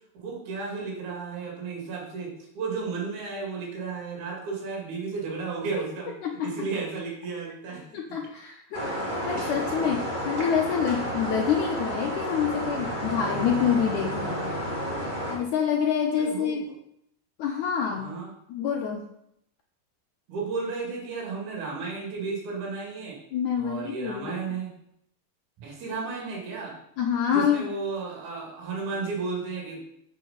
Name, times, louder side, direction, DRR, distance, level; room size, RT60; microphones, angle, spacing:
voice 1, 0.1-6.1 6.4-7.8 16.2-16.8 18.0-18.3 20.3-23.2 23.6-24.7 25.6-26.7 27.3-29.8, right 4 dB, 55° right, -3 dB, 3.5 m, -33 dB
voice 2, 6.2-6.7 7.9-8.8 9.1-14.6 15.3-16.7 17.4-18.1 18.5-19.0 23.3-24.4 27.0-27.7, left 8 dB, 75° left, 1 dB, 1.8 m, -27 dB
sound 1, 8.7-15.4, equal, 25° right, 1.1 m, -31 dB
7.4 x 6.6 x 5.7 m, 0.76 s
omnidirectional pair, 4.5 m